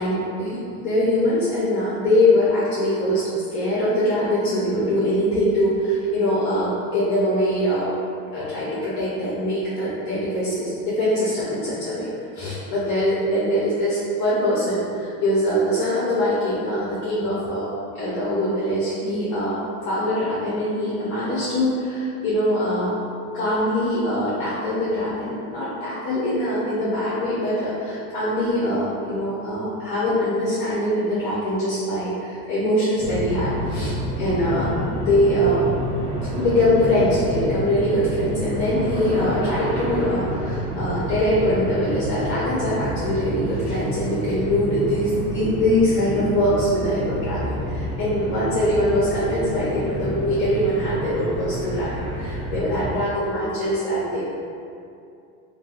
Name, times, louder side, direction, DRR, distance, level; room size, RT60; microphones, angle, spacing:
voice 1, 0.0-7.9 8.3-12.1 12.4-22.9 23.3-35.6 36.4-54.3, left 1 dB, 55° left, -9 dB, 0.7 m, -23 dB
sound 1, 33.0-52.9, right 1 dB, 15° right, 0.4 m, -29 dB
2.7 x 2.3 x 2.4 m, 2.5 s
supercardioid pair, 105°, 41 cm